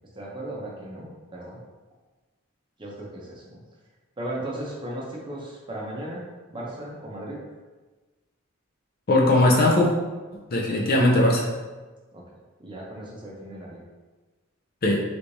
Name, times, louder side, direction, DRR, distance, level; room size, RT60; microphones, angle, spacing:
voice 1, 0.1-1.6 2.8-3.6 4.2-6.2 6.5-7.4 12.1-12.2 12.6-13.8, right 1 dB, 25° right, -3 dB, 0.7 m, -36 dB
voice 2, 9.1-9.9 10.5-11.5 14.8-15.0, left 1 dB, 45° left, 0 dB, 0.5 m, -19 dB
3.4 x 3.1 x 2.7 m, 1.3 s
head